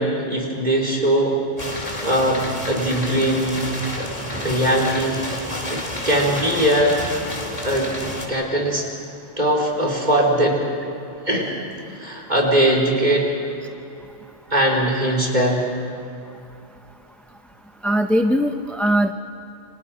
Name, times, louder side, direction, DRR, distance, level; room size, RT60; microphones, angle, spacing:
voice 1, 0.0-1.4 1.7-2.4 2.7-3.7 4.0-4.1 4.4-5.3 5.7-7.0 7.3-7.9 8.3-8.8 9.4-10.6 11.2-11.5 11.9-13.3 14.5-15.6, right 1 dB, 40° right, -1 dB, 4.4 m, -20 dB
sound 1, 1.6-8.3, left 1 dB, 35° left, 3.0 m, -30 dB
voice 2, 17.8-19.1, equal, ahead, 5 dB, 0.7 m, -20 dB
29.5 x 27.0 x 5.1 m, 2.7 s
omnidirectional pair, 1.2 m